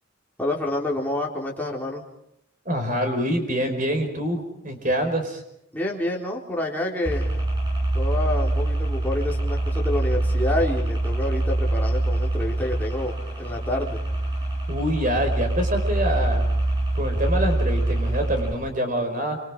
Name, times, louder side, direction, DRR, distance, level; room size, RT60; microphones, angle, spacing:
voice 1, 0.4-2.0 5.7-7.3 7.9-14.0, left 1 dB, 10° left, -2 dB, 4.0 m, -28 dB
voice 2, 2.6-5.4 14.7-16.4 16.9-19.4, equal, 45° right, 5 dB, 4.9 m, -25 dB
sound 1, 7.1-18.5, right 1 dB, 25° right, 7.6 m, -24 dB
27.5 x 26.5 x 5.0 m, 0.77 s
head